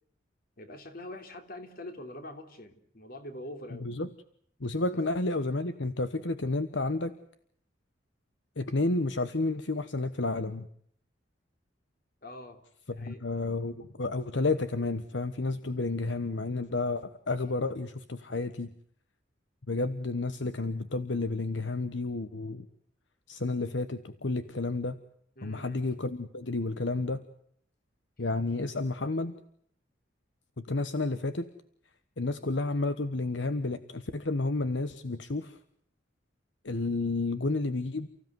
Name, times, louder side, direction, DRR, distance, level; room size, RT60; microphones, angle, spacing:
voice 1, 0.6-3.9 12.2-12.6 12.9-13.2 25.4-25.8, left 1 dB, 50° left, 7 dB, 3.4 m, -44 dB
voice 2, 4.6-7.1 8.6-10.7 13.0-18.7 19.7-22.7 23.3-25.0 25.4-27.2 28.2-29.3 30.6-31.4 32.2-35.6 36.6-38.1, left 2 dB, 75° left, 11 dB, 1.2 m, -31 dB
30.0 x 16.0 x 9.4 m, 0.65 s
head